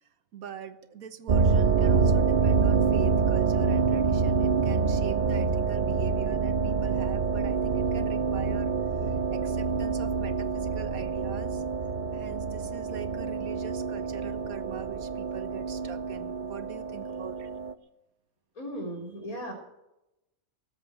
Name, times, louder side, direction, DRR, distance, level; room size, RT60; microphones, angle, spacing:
voice 1, 0.3-8.7 9.0-11.6 12.1-17.5, right 9 dB, 80° right, 10 dB, 1.5 m, -42 dB
sound 1, 1.3-17.7, right 5 dB, 50° right, 0.5 m, -26 dB
voice 2, 18.6-19.5, equal, 80° left, 1 dB, 4.0 m, -36 dB
18.5 x 7.9 x 8.1 m, 0.92 s
omnidirectional pair, 1.5 m